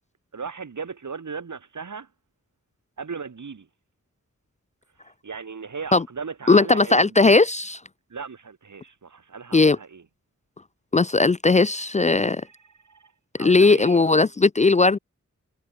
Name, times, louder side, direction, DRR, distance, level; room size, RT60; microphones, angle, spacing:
voice 1, 0.3-2.1 3.0-3.7 5.2-7.2 8.1-10.0 12.4-13.1 13.4-14.0, right 5 dB, 80° right, 4.2 m, -37 dB
voice 2, 6.5-7.8 9.5-9.8 10.9-12.4 13.4-15.0, left 3 dB, 25° left, 0.4 m, -18 dB
wide cardioid pair, 80°, 30 cm